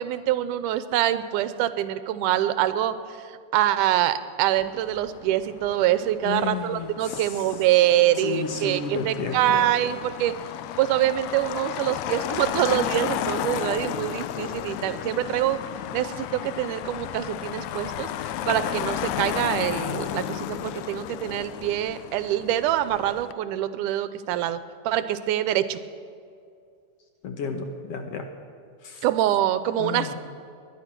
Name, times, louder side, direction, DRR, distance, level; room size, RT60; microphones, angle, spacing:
voice 1, 0.0-3.2 3.5-10.3 10.8-15.6 15.9-24.6 24.9-25.8 29.0-30.2, right 12 dB, 90° right, 12 dB, 2.2 m, -25 dB
Motor vehicle (road), 4.6-23.3, left 11 dB, 80° left, 1.8 m, -33 dB
voice 2, 6.2-7.2 8.2-9.6 27.2-28.3 28.8-29.0 29.8-30.2, left 5 dB, 65° left, 5 dB, 1.8 m, -32 dB
20.0 x 11.0 x 6.0 m, 2.3 s
omnidirectional pair, 3.6 m